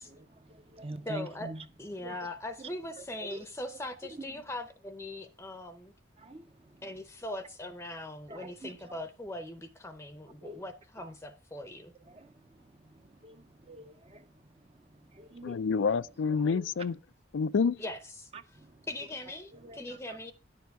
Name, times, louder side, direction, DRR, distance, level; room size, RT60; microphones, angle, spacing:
voice 1, 0.0-1.6 2.0-2.2 3.0-3.1 3.3-3.4 6.2-6.9 8.3-8.8 10.4-10.6 11.0-11.1 12.1-15.9 16.3-16.6 18.3-18.9 19.5-20.0, right 1 dB, 30° right, 0.6 m, -46 dB
voice 2, 1.1-1.5 1.8-5.9 6.8-11.9 17.8-18.6 18.9-20.3, left 1 dB, 15° left, 0.6 m, -41 dB
voice 3, 15.4-16.9 17.3-17.8, left 5 dB, 85° left, 0.4 m, -28 dB
10.0 x 7.1 x 4.5 m
head